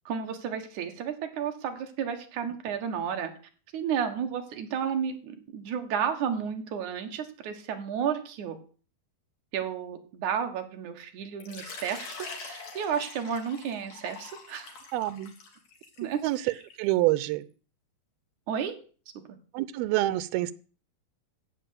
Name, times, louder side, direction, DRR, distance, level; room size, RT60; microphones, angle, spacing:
voice 1, 0.1-3.3 3.7-8.6 9.5-14.8 16.0-16.6 18.5-18.7 19.3-19.4, right 8 dB, 60° right, 2.8 m, -32 dB
Water / Liquid, 11.4-16.9, left 4 dB, 50° left, 3.5 m, -44 dB
voice 2, 14.9-15.3 16.2-16.4 16.8-17.5 19.5-20.5, right 16 dB, 90° right, 2.6 m, -26 dB
15.0 x 5.4 x 8.7 m
omnidirectional pair, 4.3 m